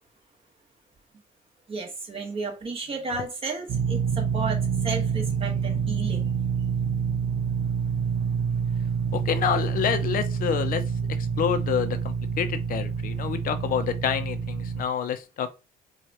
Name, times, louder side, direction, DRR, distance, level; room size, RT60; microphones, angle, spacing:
voice 1, 1.7-6.3, right 3 dB, 35° right, 1.3 m, -33 dB
sound 1, 3.7-14.8, right 6 dB, 75° right, 0.8 m, -27 dB
voice 2, 9.1-10.8 11.4-15.5, left 8 dB, 55° left, 0.6 m, -28 dB
4.7 x 2.4 x 2.9 m
cardioid pair, 110°, 17 cm